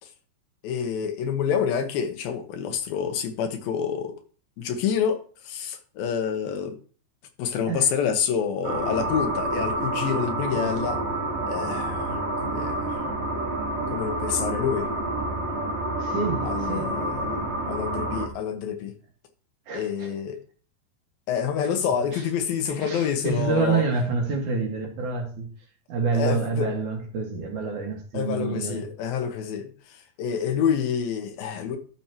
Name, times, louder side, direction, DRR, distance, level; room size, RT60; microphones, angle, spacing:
voice 1, 0.6-4.2 4.6-6.7 7.4-11.0 11.4-13.0 13.9-14.9 16.4-18.9 19.7-20.4 21.3-23.8 26.1-26.7 28.1-31.8, left 7 dB, 75° left, 2.7 m, -28 dB
sound 1, 8.6-18.3, right 2 dB, 85° right, 0.6 m, -28 dB
voice 2, 16.0-16.9 19.7-20.1 22.1-22.2 22.7-25.5 25.9-28.8, right 4 dB, 55° right, 2.9 m, -27 dB
12.5 x 7.0 x 3.0 m
omnidirectional pair, 4.5 m